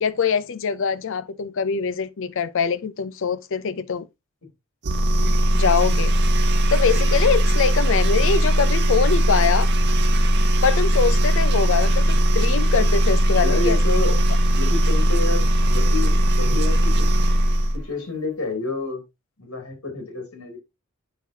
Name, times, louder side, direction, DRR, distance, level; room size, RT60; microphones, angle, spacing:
voice 1, 0.0-4.1 5.2-6.1 6.7-9.7 10.6-13.8 14.1-14.2, left 6 dB, 60° left, 0.5 m, -23 dB
sound 1, 4.8-17.8, right 1 dB, 55° right, 0.9 m, -19 dB
voice 2, 13.4-14.1 14.5-17.2 17.7-19.0 19.4-20.6, left 3 dB, 85° left, 2.8 m, -29 dB
7.8 x 5.5 x 2.8 m
head